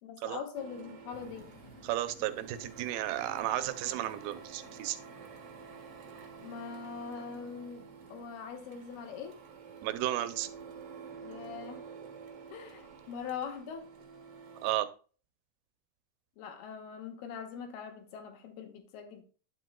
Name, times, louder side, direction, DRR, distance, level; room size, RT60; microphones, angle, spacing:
voice 1, 0.0-1.5 6.4-9.4 11.2-11.9 12.5-13.9 16.4-19.2, left 6 dB, 85° left, 3.2 m, -42 dB
Printer, 0.5-14.8, right 6 dB, 60° right, 1.6 m, -49 dB
sound 1, 1.1-11.1, equal, 30° left, 0.5 m, -59 dB
voice 2, 1.8-5.0 9.8-10.5 14.6-14.9, right 14 dB, 80° right, 2.5 m, -33 dB
9.9 x 7.6 x 2.2 m
omnidirectional pair, 4.4 m